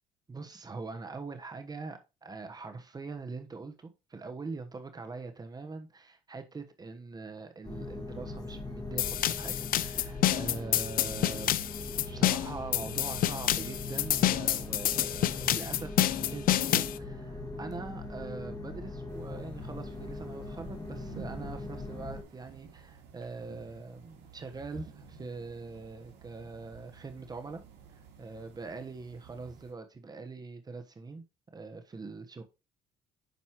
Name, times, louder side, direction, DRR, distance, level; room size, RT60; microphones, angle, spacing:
voice 1, 0.3-11.5 12.1-27.6 28.2-31.2 31.5-32.4, right 3 dB, 25° right, 1.2 m, -42 dB
sound 1, 7.6-22.2, left 2 dB, 20° left, 2.1 m, -41 dB
sound 2, 9.0-17.0, left 13 dB, 60° left, 0.5 m, -28 dB
sound 3, 19.1-29.7, right 6 dB, 85° right, 2.2 m, -52 dB
9.4 x 5.3 x 3.1 m
cardioid pair, 110°, 17 cm